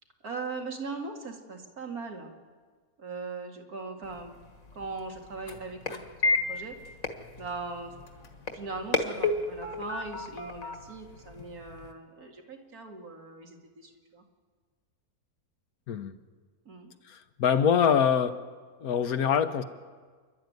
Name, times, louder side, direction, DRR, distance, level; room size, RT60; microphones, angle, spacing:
voice 1, 0.2-2.3 3.0-4.4 4.7-6.8 7.4-7.9 8.5-14.2 16.7-16.9, right 3 dB, 85° right, 2 dB, 2.7 m, -40 dB
sound 1, 4.0-11.9, left 3 dB, 70° left, 2.1 m, -33 dB
voice 2, 17.1-18.4 18.8-19.6, left 7 dB, 85° left, 10 dB, 1.5 m, -24 dB
29.0 x 12.0 x 9.5 m, 1.6 s
omnidirectional pair, 1.5 m